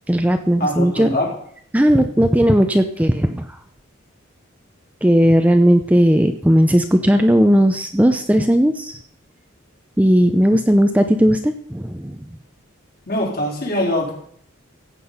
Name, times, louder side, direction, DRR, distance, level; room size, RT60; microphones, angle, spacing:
voice 1, 0.1-1.2 1.7-3.6 5.0-9.0 10.0-12.3, equal, 5° right, 7 dB, 0.6 m, -16 dB
voice 2, 0.6-1.3 13.1-14.1, left 1 dB, 50° left, -2 dB, 4.2 m, -22 dB
15.5 x 8.4 x 5.5 m, 0.63 s
head